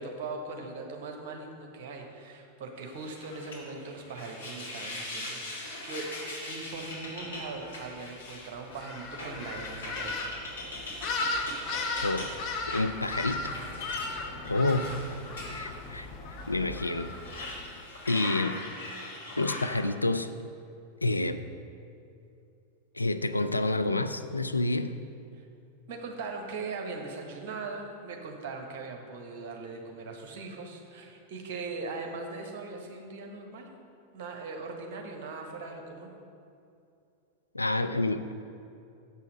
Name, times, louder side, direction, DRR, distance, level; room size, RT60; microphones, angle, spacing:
voice 1, 0.0-6.1 6.5-10.2 25.3-25.5 25.9-33.7 34.1-36.1, right 3 dB, 50° right, 2 dB, 1.1 m, -40 dB
sound 1, 2.9-16.1 16.4-16.5 17.0-19.8, left 2 dB, 70° left, 1.8 m, -41 dB
sound 2, 8.7-17.8, left 3 dB, 35° left, 0.8 m, -36 dB
voice 2, 12.7-13.4 13.9-14.0 14.5-15.1 15.5-16.1 16.5-17.1 18.1-18.6 19.4-20.3 21.0-21.4 22.9-24.9 37.5-38.3, left 2 dB, 85° left, 9 dB, 0.3 m, -28 dB
7.2 x 5.6 x 5.2 m, 2.6 s
figure-of-eight pair, 90°, 0 cm